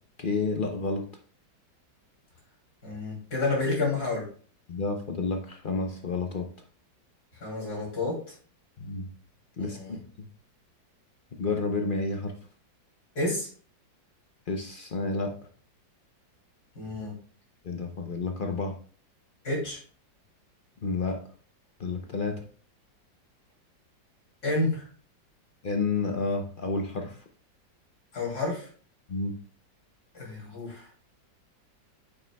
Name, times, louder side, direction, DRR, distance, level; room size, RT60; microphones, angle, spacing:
voice 1, 0.2-1.1 4.7-6.5 8.8-9.1 9.6-10.0 11.4-12.3 14.5-15.3 17.6-18.7 20.8-21.2 21.8-22.4 25.6-27.2 29.1-29.3, left 3 dB, 75° left, 3 dB, 0.4 m, -30 dB
voice 2, 2.8-4.2 7.4-8.2 9.6-10.0 13.1-13.5 16.7-17.1 19.4-19.8 24.4-24.9 28.1-28.7 30.1-30.9, left 2 dB, 55° left, -4 dB, 3.4 m, -29 dB
9.1 x 7.2 x 2.3 m, 0.43 s
omnidirectional pair, 2.0 m